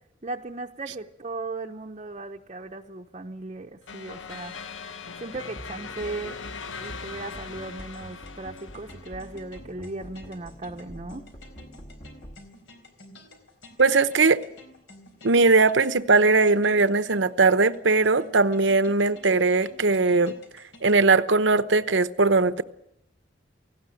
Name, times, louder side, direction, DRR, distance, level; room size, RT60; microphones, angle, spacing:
voice 1, 0.2-4.5 5.2-6.4 6.8-11.2, right 2 dB, 35° right, 0.8 m, -37 dB
sound 1, 3.9-9.3, left 5 dB, 90° left, 1.0 m, -40 dB
sound 2, 5.3-12.3, equal, 40° left, 1.9 m, -45 dB
sound 3, 6.8-21.1, left 1 dB, 75° left, 4.0 m, -51 dB
voice 2, 13.8-14.4 15.2-20.3 20.8-22.6, right 3 dB, 70° right, 0.9 m, -20 dB
18.0 x 17.0 x 9.0 m
head